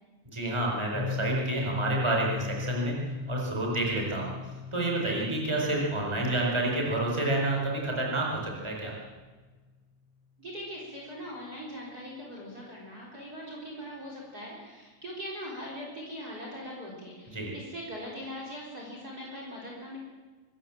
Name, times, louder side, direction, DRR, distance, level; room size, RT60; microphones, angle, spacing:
voice 1, 0.2-3.0 3.3-4.3 4.7-9.0 17.3-17.5, right 2 dB, 10° right, -1 dB, 4.6 m, -29 dB
Piano, 0.9-8.4, left 4 dB, 50° left, 7.6 m, -38 dB
voice 2, 10.4-20.0, equal, 30° right, -2 dB, 4.3 m, -41 dB
23.5 x 14.5 x 7.5 m, 1.3 s
omnidirectional pair, 3.6 m